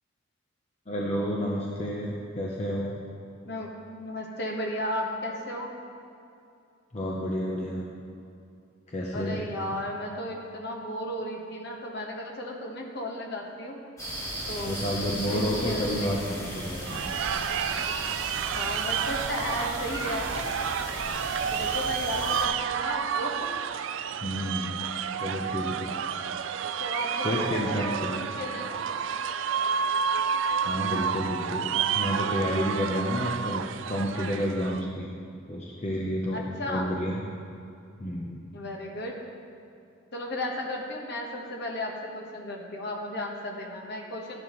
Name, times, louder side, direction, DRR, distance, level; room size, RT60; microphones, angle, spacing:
voice 1, 0.9-2.9 6.9-7.8 8.9-9.4 14.6-17.0 24.2-24.7 25.2-25.9 27.2-28.1 30.6-31.7 31.9-33.6 33.9-35.1 35.5-37.2 38.0-38.4, equal, 35° left, -3 dB, 0.8 m, -30 dB
voice 2, 3.4-5.7 9.1-13.8 14.5-14.8 15.3-16.4 18.5-20.5 21.5-23.5 26.8-28.9 36.3-37.0 38.5-39.2 40.1-44.4, left 1 dB, 50° left, 0 dB, 1.3 m, -34 dB
sound 1, 14.0-22.5, equal, 15° left, 2.6 m, -36 dB
sound 2, 16.8-34.8, right 7 dB, 65° right, 0.3 m, -30 dB
12.5 x 10.5 x 3.1 m, 2.6 s
head